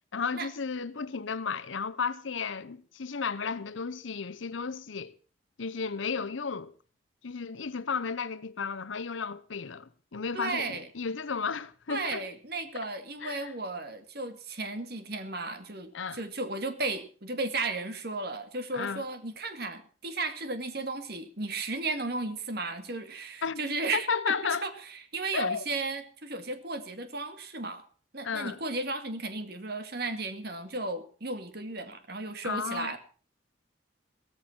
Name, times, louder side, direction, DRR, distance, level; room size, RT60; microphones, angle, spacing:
voice 1, 0.1-5.1 5.6-6.7 7.2-12.3 13.2-13.5 15.9-16.2 18.7-19.0 23.4-23.6 23.9-24.6 25.3-25.6 28.2-28.6 32.4-32.9, left 5 dB, 80° left, 0.8 m, -33 dB
voice 2, 10.3-10.9 11.9-24.1 24.6-27.8 28.1-33.0, right 3 dB, 55° right, 2.1 m, -34 dB
16.0 x 14.5 x 4.4 m
head